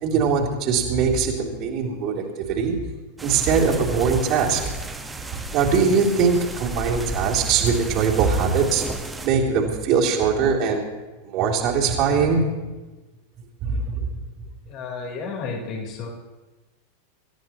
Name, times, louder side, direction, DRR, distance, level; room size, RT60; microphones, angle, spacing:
voice 1, 0.0-2.8 3.2-4.7 5.3-8.8 9.2-10.8 11.2-12.4 13.6-14.1, right 5 dB, 40° right, -3 dB, 3.5 m, -21 dB
sound 1, 3.2-9.3, right 2 dB, 10° right, 1.4 m, -34 dB
voice 2, 14.7-16.1, left 4 dB, 40° left, -1 dB, 4.2 m, -32 dB
28.0 x 14.0 x 3.1 m, 1.2 s
figure-of-eight pair, 90°, 0 cm